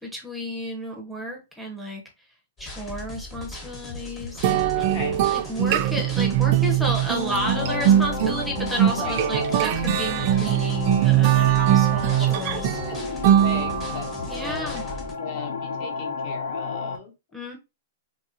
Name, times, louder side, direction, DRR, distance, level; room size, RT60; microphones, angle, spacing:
voice 1, 0.0-2.0 2.6-4.6 5.3-12.7 14.3-14.8 17.3-17.6, equal, ahead, 1 dB, 0.6 m, -32 dB
sound 1, 2.6-15.1, left 1 dB, 25° left, 1.1 m, -39 dB
sound 2, 4.4-14.1, right 12 dB, 45° right, 0.3 m, -21 dB
voice 2, 4.7-5.2 8.9-9.3 11.7-12.3 12.9-17.1, left 5 dB, 45° left, 3 dB, 1.1 m, -37 dB
sound 3, 7.0-17.0, left 5 dB, 75° left, 0.7 m, -33 dB
3.0 x 2.9 x 2.5 m, 0.26 s
hypercardioid pair, 145°, 0 cm